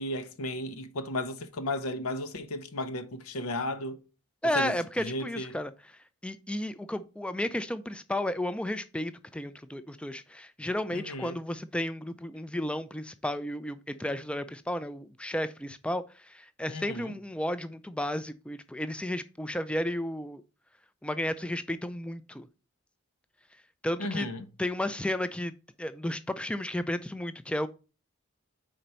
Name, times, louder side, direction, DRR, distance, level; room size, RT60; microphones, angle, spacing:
voice 1, 0.0-4.0 4.5-5.6 10.9-11.4 16.7-17.1 24.0-24.5, left 1 dB, 90° left, 0.8 m, -34 dB
voice 2, 4.4-5.7 6.2-20.4 21.0-22.5 23.8-24.3 24.6-25.5 25.8-27.7, left 1 dB, 5° left, 0.3 m, -33 dB
5.0 x 4.4 x 5.4 m
head